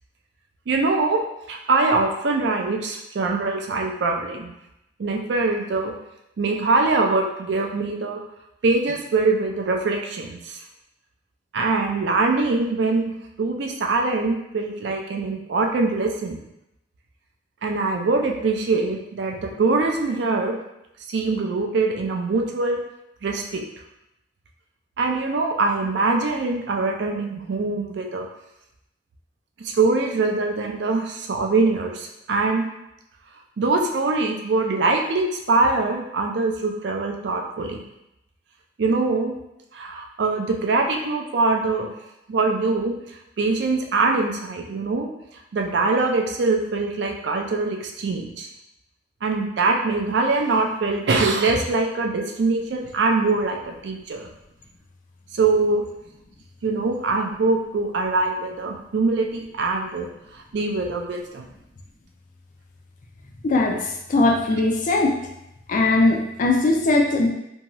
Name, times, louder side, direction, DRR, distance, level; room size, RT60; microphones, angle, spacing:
voice 1, 0.7-1.2 1.5-4.5 5.0-5.9 6.4-8.2 8.6-10.6 11.5-16.4 17.6-20.6 21.1-22.8 23.2-23.6 25.0-28.3 29.6-32.6 33.6-37.8 38.8-39.3 39.7-41.9 42.3-45.1 45.5-48.5 49.2-54.3 55.3-55.8 56.6-61.5, right 3 dB, 65° right, 2 dB, 0.4 m, -23 dB
voice 2, 63.4-65.1 65.7-67.3, left 2 dB, 45° left, 1 dB, 0.4 m, -20 dB
2.7 x 2.3 x 2.9 m, 0.85 s
head